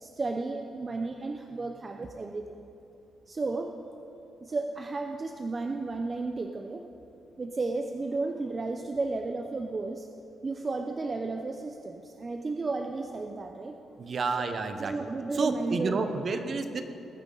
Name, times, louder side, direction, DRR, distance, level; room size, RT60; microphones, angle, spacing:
voice 1, 0.0-2.6 3.3-3.8 4.4-6.9 7.4-10.1 10.4-13.8 14.8-16.2, right 3 dB, 30° right, 4 dB, 0.6 m, -33 dB
voice 2, 14.0-14.9 15.3-16.8, right 4 dB, 45° right, 8 dB, 1.0 m, -30 dB
20.0 x 9.5 x 3.9 m, 2.9 s
cardioid pair, 110°, 0 cm